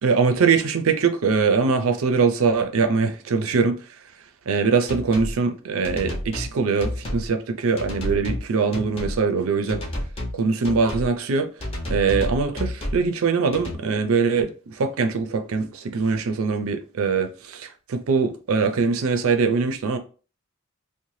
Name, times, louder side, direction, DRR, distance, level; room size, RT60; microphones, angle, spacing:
voice 1, 0.0-3.8 4.5-9.8 10.3-11.5 11.9-20.0, right 5 dB, 85° right, 0.5 m, -22 dB
sound 1, 4.9-5.3 5.8-6.5 6.8-7.3 7.8-8.4 8.7-9.2 9.7-10.4 10.6-11.1 11.6-13.0 13.5-13.8, left 1 dB, 30° left, 0.6 m, -30 dB
2.7 x 2.2 x 3.1 m
head